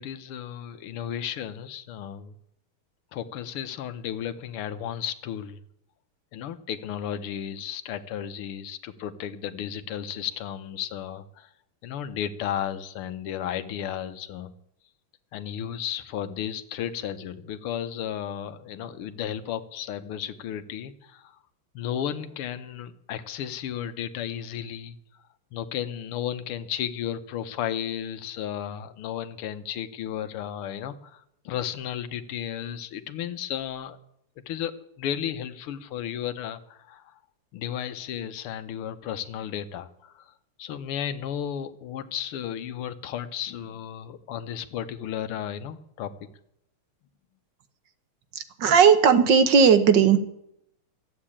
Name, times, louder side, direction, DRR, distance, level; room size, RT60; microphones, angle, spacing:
voice 1, 0.0-2.3 3.1-5.6 6.3-11.5 11.8-14.5 15.3-21.4 21.8-25.0 25.5-34.0 34.5-37.2 37.5-40.3 40.6-46.1, left 9 dB, 90° left, 11 dB, 1.8 m, -34 dB
voice 2, 48.3-50.2, right 6 dB, 60° right, 10 dB, 1.6 m, -17 dB
13.5 x 8.6 x 8.7 m, 0.75 s
omnidirectional pair, 2.4 m